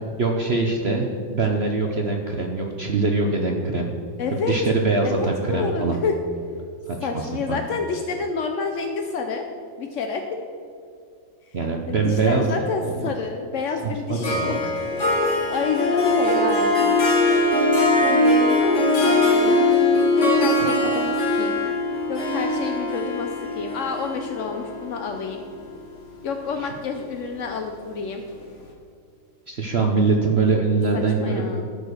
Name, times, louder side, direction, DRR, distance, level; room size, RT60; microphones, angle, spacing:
voice 1, 0.2-3.9 4.3-6.0 6.9-7.1 7.5-7.6 11.5-12.5 12.8-13.1 14.1-14.6 26.6-26.7 29.5-31.4, right 3 dB, 55° right, 1 dB, 0.7 m, -23 dB
voice 2, 4.2-4.6 5.0-6.2 7.0-9.5 9.8-10.4 11.9-14.7 15.5-16.8 18.1-19.7 20.2-21.6 22.1-25.4 26.2-28.2 30.9-31.6, left 5 dB, 70° left, 4 dB, 0.7 m, -29 dB
Harp, 14.2-25.7, left 2 dB, 40° left, 1.7 m, -21 dB
13.0 x 4.9 x 6.4 m, 2.3 s
omnidirectional pair, 2.1 m